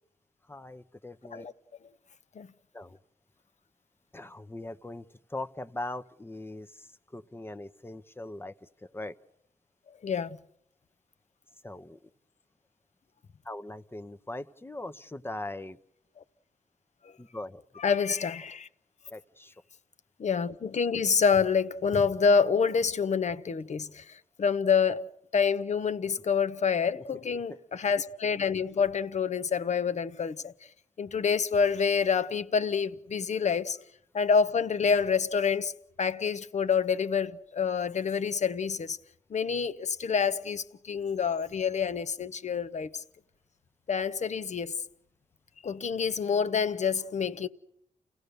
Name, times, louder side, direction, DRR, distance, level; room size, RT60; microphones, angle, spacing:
voice 1, 0.5-1.5 2.7-3.0 4.1-5.0 5.3-9.1 11.6-12.0 13.4-15.8 17.2-17.6 19.1-19.5 26.9-27.0 27.3-27.4, left 2 dB, 15° left, 0.9 m, -40 dB
voice 2, 10.0-10.4 17.8-18.7 20.2-24.0 24.4-25.0 25.3-30.5 31.0-33.8 34.1-35.7 36.0-39.0 39.3-43.0 43.9-44.8 45.6-47.5, left 6 dB, 55° left, 0.9 m, -27 dB
29.0 x 16.5 x 6.8 m
cardioid pair, 60°, 14 cm